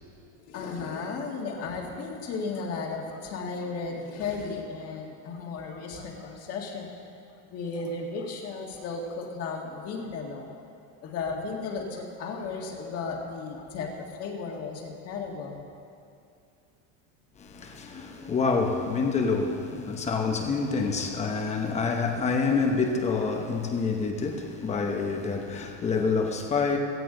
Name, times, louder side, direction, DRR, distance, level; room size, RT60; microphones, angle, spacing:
voice 1, 0.5-6.9 7.5-10.6 11.0-15.6, left 4 dB, 35° left, 1 dB, 1.8 m, -35 dB
voice 2, 17.4-26.8, left 4 dB, 15° left, 3 dB, 1.0 m, -27 dB
17.0 x 15.0 x 3.9 m, 2.4 s
cardioid pair, 175°, 43 cm